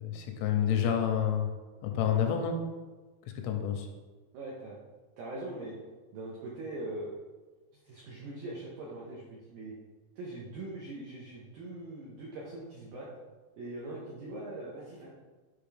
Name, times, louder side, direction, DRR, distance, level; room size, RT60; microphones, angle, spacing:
voice 1, 0.0-1.5 1.8-2.6 3.4-3.9, left 8 dB, 85° left, 4 dB, 3.0 m, -28 dB
voice 2, 4.3-4.8 5.2-5.8 6.1-7.1 7.8-9.7 10.2-13.1 13.6-15.1, right 2 dB, 85° right, -4 dB, 2.0 m, -41 dB
7.9 x 5.3 x 3.4 m, 1.3 s
omnidirectional pair, 5.5 m